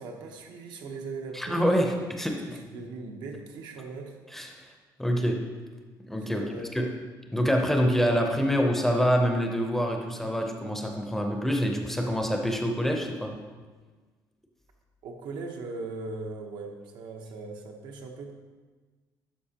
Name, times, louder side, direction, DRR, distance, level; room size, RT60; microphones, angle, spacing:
voice 1, 0.0-1.6 2.4-4.2 6.2-6.8 15.0-18.3, right 3 dB, 80° right, 3 dB, 0.9 m, -39 dB
voice 2, 1.3-2.4 4.3-5.4 6.0-6.4 6.7-6.9 7.3-13.4, equal, 5° left, 2 dB, 0.5 m, -26 dB
11.5 x 5.1 x 2.8 m, 1.4 s
cardioid pair, 180°, 8 cm